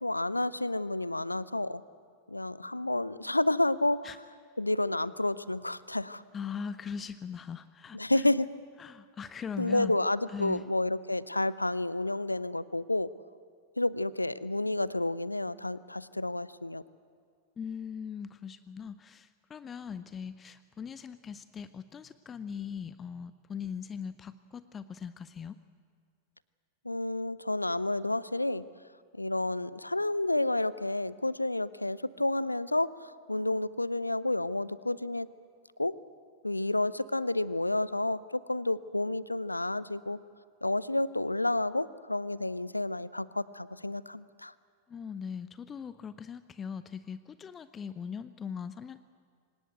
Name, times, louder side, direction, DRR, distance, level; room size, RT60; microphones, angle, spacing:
voice 1, 0.0-1.8 2.3-4.0 4.6-6.2 7.9-8.5 9.6-13.1 13.8-16.8 26.8-28.6 29.1-35.3 35.8-35.9 36.4-40.2 40.6-44.5, left 2 dB, 85° left, 19 dB, 0.5 m, -30 dB
voice 2, 6.3-8.3 8.8-10.0 10.3-10.6 17.6-25.6 44.9-49.0, left 7 dB, 20° left, 14 dB, 0.6 m, -40 dB
24.5 x 19.5 x 7.9 m, 2.1 s
figure-of-eight pair, 90°, 0 cm